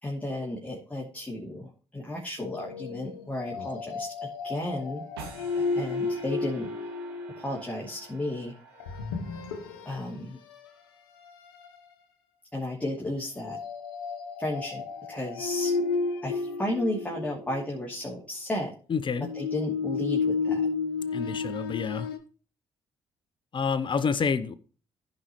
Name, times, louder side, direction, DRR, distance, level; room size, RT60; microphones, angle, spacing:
voice 1, 0.0-4.1 4.4-5.0 5.7-6.9 7.4-8.5 9.8-10.4 12.5-13.6 14.4-15.7 16.2-18.7 19.3-20.6, left 1 dB, 10° left, 2.8 m, -33 dB
sound 1, 2.4-7.7 8.8-10.0 10.5-10.7 11.2-11.8 13.4-17.8 19.1-22.2, left 4 dB, 85° left, 1.0 m, -32 dB
sound 2, 5.2-10.4, right 5 dB, 85° right, 1.8 m, -49 dB
voice 2, 18.9-19.3 21.1-22.1 23.5-24.6, left 6 dB, 40° left, 0.9 m, -28 dB
15.0 x 5.3 x 3.1 m
hypercardioid pair, 45°, 12 cm